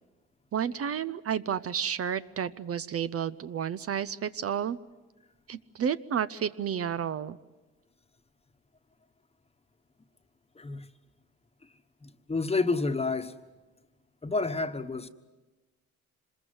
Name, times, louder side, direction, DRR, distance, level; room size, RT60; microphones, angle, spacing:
voice 1, 0.5-4.8 5.5-7.4, right 8 dB, 50° right, 0.7 m, -31 dB
voice 2, 10.6-10.9 12.0-13.4 14.2-15.1, left 3 dB, 20° left, 1.3 m, -29 dB
25.5 x 21.5 x 7.8 m
cardioid pair, 90°, 30 cm